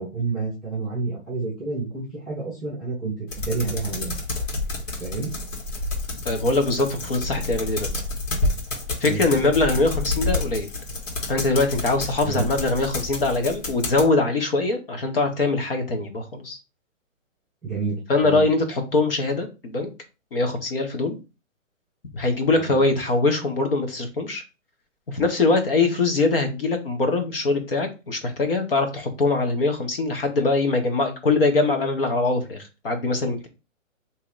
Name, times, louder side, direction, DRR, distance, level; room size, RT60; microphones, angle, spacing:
voice 1, 0.0-4.2 5.0-5.3 9.0-9.2 12.2-12.5 17.6-18.5 22.6-22.8, right 4 dB, ahead, -10 dB, 0.4 m, -29 dB
sound 1, 3.3-14.1, left 2 dB, 70° left, 1.6 m, -29 dB
voice 2, 6.2-7.9 9.0-10.7 11.3-16.6 18.1-19.9 20.3-21.2 22.1-24.4 25.1-33.5, left 3 dB, 45° left, 5 dB, 0.9 m, -22 dB
3.0 x 2.8 x 3.8 m, 0.29 s
hypercardioid pair, 175°, 40 cm